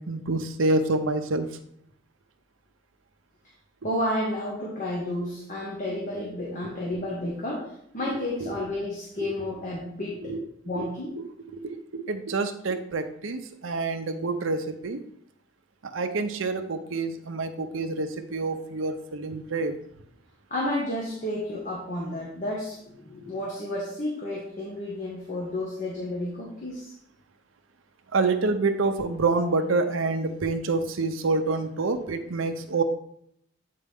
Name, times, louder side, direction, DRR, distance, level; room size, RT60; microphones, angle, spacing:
voice 1, 0.1-1.5 8.0-8.1 8.4-8.5 10.2-10.4 10.8-10.9 11.5-15.0 15.8-19.8 28.1-32.8, right 3 dB, 85° right, 7 dB, 0.7 m, -27 dB
voice 2, 3.8-10.3 10.6-11.1 20.5-26.9, left 1 dB, 40° left, -4 dB, 1.4 m, -31 dB
8.5 x 4.3 x 3.5 m, 0.69 s
head